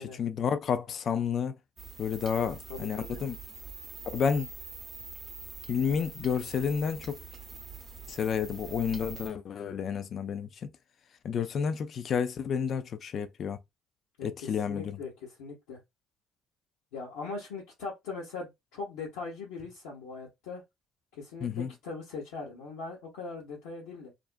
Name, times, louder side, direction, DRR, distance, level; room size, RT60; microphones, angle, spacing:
voice 1, 0.0-1.6 2.0-3.4 4.1-4.5 5.7-7.2 8.1-10.7 11.2-13.6 14.2-15.0 21.4-21.7, left 7 dB, 55° left, 0.4 m, -30 dB
sound 1, 1.8-9.3, right 5 dB, 40° right, 0.7 m, -44 dB
voice 2, 2.7-3.2 14.2-15.8 16.9-20.6 21.1-24.1, left 4 dB, 85° left, 0.9 m, -40 dB
2.4 x 2.1 x 2.5 m
hypercardioid pair, 55°, 0 cm